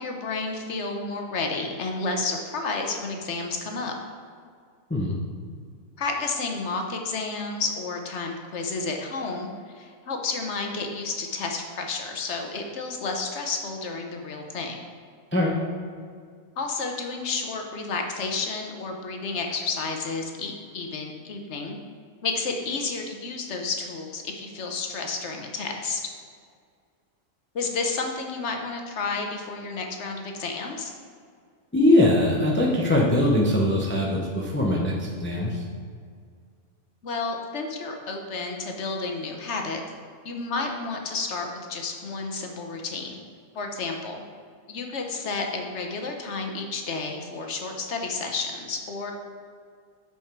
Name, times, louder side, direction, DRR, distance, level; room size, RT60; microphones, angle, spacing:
voice 1, 0.0-3.9 6.0-9.5 9.7-14.8 16.6-21.8 22.2-26.0 27.5-30.9 37.0-39.8 40.2-43.2 43.5-44.2 44.7-49.1, left 3 dB, 55° left, 3 dB, 1.2 m, -31 dB
voice 2, 31.7-35.6, left 1 dB, 10° left, -2 dB, 0.7 m, -21 dB
7.4 x 5.3 x 4.6 m, 2.1 s
omnidirectional pair, 1.5 m